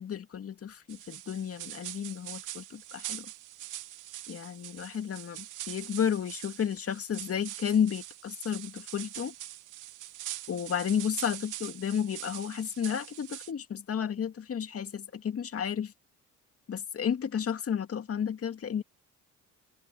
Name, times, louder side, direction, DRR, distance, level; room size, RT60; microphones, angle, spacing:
voice 1, 0.0-3.3 4.3-9.3 10.5-15.9 16.7-18.8, left 8 dB, 45° left, 2.2 m, -32 dB
sound 1, 0.9-13.5, right 14 dB, 75° right, 1.2 m, -43 dB
supercardioid pair, 75°, 31 cm